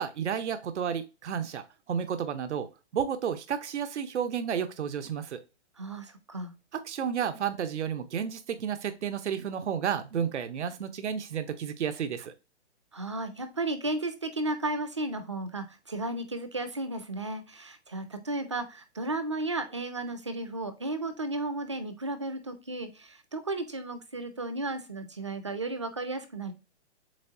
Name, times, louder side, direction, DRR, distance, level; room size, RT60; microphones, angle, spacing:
voice 1, 0.0-2.7 2.9-5.4 6.7-12.3, right 8 dB, 90° right, 10 dB, 0.8 m, -32 dB
voice 2, 5.8-6.5 12.9-26.5, right 2 dB, 30° right, 11 dB, 0.4 m, -34 dB
7.4 x 2.6 x 2.7 m, 0.29 s
hypercardioid pair, 170°, 34 cm